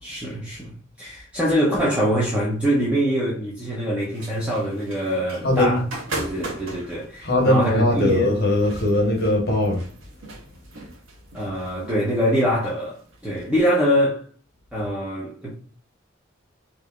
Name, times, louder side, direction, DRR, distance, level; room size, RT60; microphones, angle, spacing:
voice 1, 0.0-5.8 6.1-8.3 11.3-13.0 13.2-14.2 14.7-15.5, equal, 5° right, 0.9 m, -24 dB
sound 1, 4.1-13.5, right 2 dB, 85° right, 1.0 m, -38 dB
voice 2, 5.4-5.8 7.2-9.8, left 1 dB, 55° left, 1.2 m, -20 dB
4.7 x 2.7 x 2.4 m
head